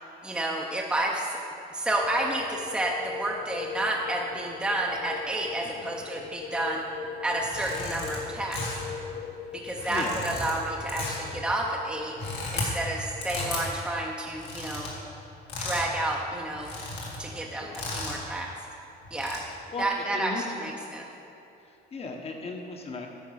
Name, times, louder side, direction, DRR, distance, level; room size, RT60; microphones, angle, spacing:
voice 1, 0.2-1.4 1.7-6.8 7.2-8.6 9.5-12.1 12.5-14.9 15.6-16.7 17.2-18.5 19.1-19.4 19.8-21.0, right 1 dB, 5° right, -1 dB, 0.7 m, -30 dB
sound 1, 1.9-13.6, left 7 dB, 65° left, 0.5 m, -41 dB
sound 2, 7.4-8.2 8.5-8.9 9.7-10.5 10.9-11.3 12.0-12.7 13.2-13.6 14.3-14.9 15.5-15.9 16.2-16.3 16.5-17.2 17.7-18.2 19.0-19.4, left 3 dB, 80° left, 2.1 m, -35 dB
voice 2, 9.6-10.2 17.5-17.8 19.7-20.5 21.7-23.1, left 3 dB, 35° left, 3 dB, 1.1 m, -37 dB
9.5 x 4.5 x 6.3 m, 2.8 s
cardioid pair, 110°, 17 cm